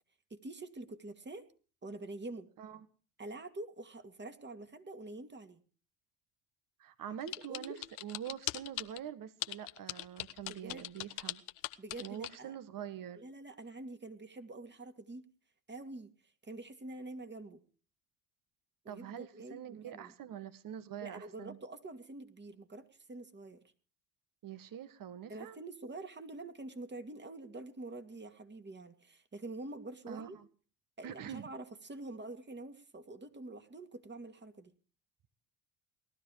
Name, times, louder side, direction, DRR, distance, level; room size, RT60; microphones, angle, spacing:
voice 1, 0.3-1.4 1.8-2.5 3.2-5.6 7.5-7.8 10.5-10.9 11.8-12.6 13.2-15.3 15.7-16.1 16.4-17.6 18.8-20.1 21.0-23.6 25.3-30.4 31.0-34.7, right 2 dB, 25° right, 8 dB, 2.5 m, -46 dB
voice 2, 6.8-11.4 12.0-13.2 18.9-21.6 24.4-25.6 30.1-30.5 31.0-31.5, right 9 dB, 50° right, 12 dB, 1.8 m, -45 dB
sound 1, 7.3-9.0 9.4-12.3, left 17 dB, 85° left, 1.0 m, -39 dB
19.0 x 12.5 x 4.9 m, 0.39 s
hypercardioid pair, 70°, 43 cm